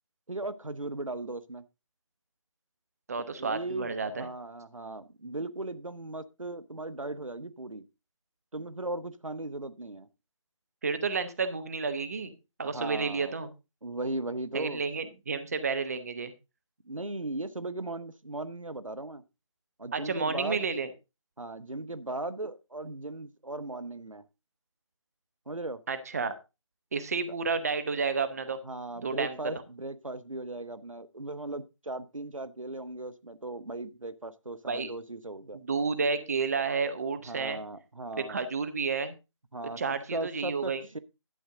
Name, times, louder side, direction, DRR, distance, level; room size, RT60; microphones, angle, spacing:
voice 1, 0.3-1.6 3.4-7.9 8.5-10.1 12.6-13.4 13.8-14.8 16.9-19.2 19.8-20.7 21.4-24.2 25.5-25.8 28.6-35.6 37.3-38.4 39.5-41.0, right 2 dB, 85° right, 14 dB, 1.0 m, -37 dB
voice 2, 3.1-4.3 10.8-12.3 12.6-13.5 14.5-16.3 19.9-20.9 25.9-26.3 26.9-28.6 29.0-29.4 34.7-34.9 35.5-37.6 38.2-39.1 39.8-40.8, right 4 dB, 30° right, 10 dB, 0.9 m, -31 dB
11.5 x 8.0 x 3.7 m, 0.27 s
figure-of-eight pair, 160°, 16 cm